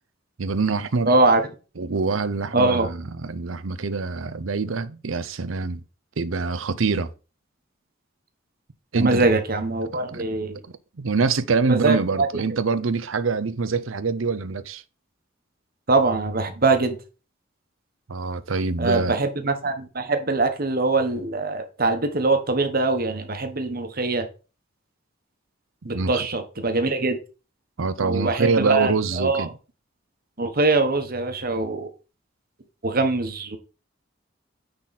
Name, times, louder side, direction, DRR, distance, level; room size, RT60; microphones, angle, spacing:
voice 1, 0.4-1.1 1.8-5.8 6.2-7.1 8.9-9.3 10.1-10.2 11.0-14.8 18.1-19.2 25.9-26.2 27.8-29.5, right 4 dB, 85° right, 0.7 m, -25 dB
voice 2, 1.1-1.4 2.5-2.9 8.9-10.6 11.7-12.4 15.9-17.0 18.8-24.3 25.8-27.2 28.0-29.5 30.4-31.9 32.8-33.6, right 3 dB, 50° right, 1.3 m, -22 dB
9.8 x 4.1 x 4.2 m
head